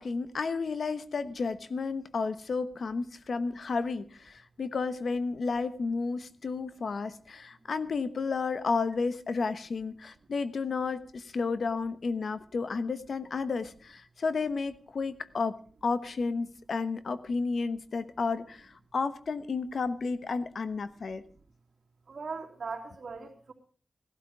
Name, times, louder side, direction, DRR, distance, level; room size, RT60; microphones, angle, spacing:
voice 1, 0.0-15.6 15.8-21.2, left 4 dB, 75° left, 12 dB, 1.1 m, -32 dB
voice 2, 22.1-23.5, right 4 dB, 65° right, 2 dB, 3.4 m, -39 dB
17.5 x 12.5 x 4.8 m, 0.43 s
wide cardioid pair, 85°, 0 cm